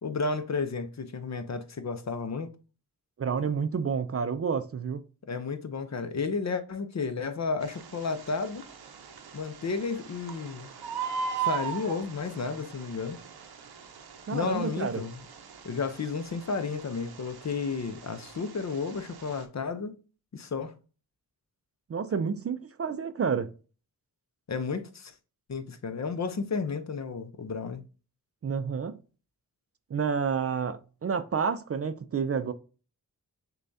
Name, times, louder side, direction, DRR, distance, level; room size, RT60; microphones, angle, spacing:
voice 1, 0.0-2.5 5.3-8.7 9.3-10.7 11.4-13.2 14.3-15.2 15.6-19.9 20.3-20.8 24.5-25.1 25.5-27.8, left 4 dB, 45° left, 0.6 m, -32 dB
voice 2, 3.2-5.0 14.3-15.0 21.9-23.5 28.4-29.0 29.9-32.5, right 6 dB, 40° right, 0.4 m, -29 dB
Bird, 7.6-19.4, right 7 dB, 85° right, 0.7 m, -39 dB
6.6 x 2.3 x 2.6 m
wide cardioid pair, 65°, 37 cm